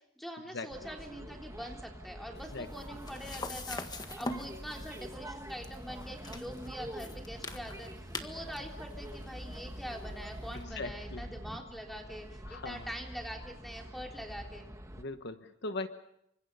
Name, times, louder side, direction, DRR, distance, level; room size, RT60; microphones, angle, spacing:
voice 1, 0.2-3.9 4.2-14.7, equal, ahead, 1 dB, 3.6 m, -44 dB
sound 1, 0.7-15.0, right 1 dB, 15° right, 1.5 m, -46 dB
sound 2, 2.3-10.6, left 2 dB, 20° left, 1.6 m, -45 dB
Organ, 2.4-12.8, equal, 35° right, 7.7 m, -67 dB
voice 2, 10.8-11.3 12.5-12.9 15.0-15.9, left 3 dB, 60° left, 9 dB, 1.1 m, -39 dB
28.5 x 25.0 x 5.6 m, 0.79 s
head